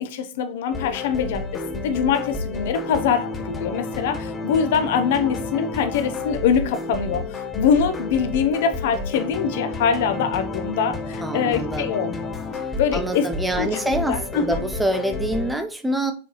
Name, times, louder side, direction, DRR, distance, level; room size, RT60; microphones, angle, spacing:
voice 1, 0.0-12.2 12.8-13.3 13.6-14.6, left 7 dB, 55° left, 0.9 m, -23 dB
sound 1, 0.7-15.5, left 3 dB, 15° left, 1.0 m, -31 dB
voice 2, 11.2-11.9 12.6-16.1, right 1 dB, 5° right, 0.6 m, -26 dB
6.9 x 4.6 x 3.0 m
figure-of-eight pair, 90°, 0 cm